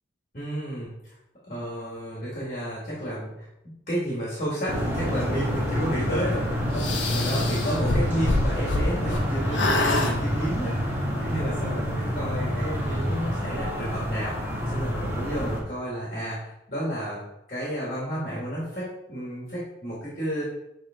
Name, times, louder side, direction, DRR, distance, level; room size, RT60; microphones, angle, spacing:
voice 1, 0.3-1.1 1.5-3.5 3.9-14.3 14.7-17.2 17.5-20.4, equal, 40° left, -7 dB, 2.3 m, -32 dB
sound 1, 4.7-15.6, equal, 10° right, 1.7 m, -28 dB
sound 2, 6.8-9.2 9.5-10.1, left 2 dB, 85° left, 1.1 m, -26 dB
8.3 x 3.8 x 3.8 m, 0.86 s
head